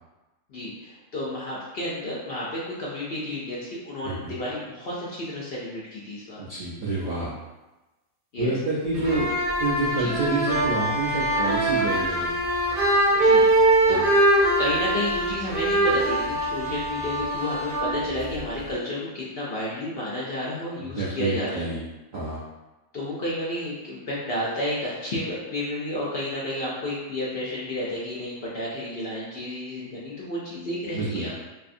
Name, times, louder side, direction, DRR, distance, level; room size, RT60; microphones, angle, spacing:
voice 1, 0.5-6.4 8.3-8.5 9.0-9.2 10.0-10.1 13.2-13.5 13.9-14.0 14.6-21.7 22.9-31.4, left 1 dB, 60° left, -6 dB, 0.6 m, -31 dB
voice 2, 6.5-7.3 8.4-9.3 9.6-12.3 13.9-14.1 20.8-21.8 22.1-22.4 30.9-31.3, right 2 dB, 65° right, -7 dB, 0.4 m, -28 dB
sound 1, 8.9-18.7, right 1 dB, 50° right, 0.8 m, -23 dB
2.6 x 2.5 x 2.4 m, 1.1 s
omnidirectional pair, 1.4 m